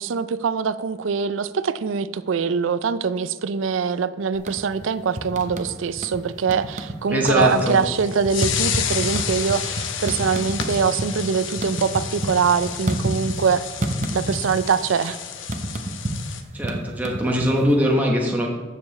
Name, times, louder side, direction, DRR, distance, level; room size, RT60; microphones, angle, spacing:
voice 1, 0.0-13.7 14.1-15.2, right 6 dB, 90° right, 15 dB, 0.4 m, -23 dB
sound 1, 4.3-4.8 5.2-6.2 6.5-7.0 7.2-11.1 11.4-13.5 13.8-14.7 14.9-17.8, right 1 dB, 40° right, 0.8 m, -28 dB
voice 2, 7.1-7.8 16.5-18.5, equal, 10° right, -2 dB, 1.0 m, -21 dB
sound 2, 7.4-16.4, left 8 dB, 85° left, 0.8 m, -31 dB
14.5 x 6.8 x 3.2 m, 1.4 s
head